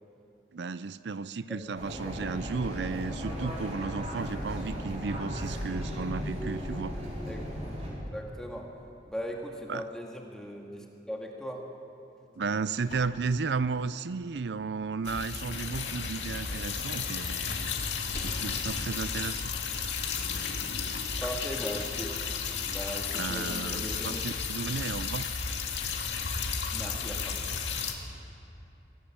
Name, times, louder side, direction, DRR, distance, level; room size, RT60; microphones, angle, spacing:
voice 1, 0.5-7.1 9.7-9.8 12.4-17.7 18.2-19.5 23.1-25.3, right 4 dB, 75° right, 15 dB, 0.5 m, -34 dB
sound 1, 1.7-7.9, equal, 40° right, 4.7 m, -36 dB
voice 2, 1.9-2.3 7.3-7.4 7.9-8.7 9.1-11.6 21.2-22.2 22.7-24.2 26.7-27.4, equal, 5° left, 0 dB, 1.9 m, -39 dB
sound 2, 12.3-20.3, left 1 dB, 45° left, 3.8 m, -49 dB
sound 3, 15.0-27.9, left 5 dB, 85° left, 2.2 m, -33 dB
25.0 x 17.0 x 7.3 m, 2.8 s
head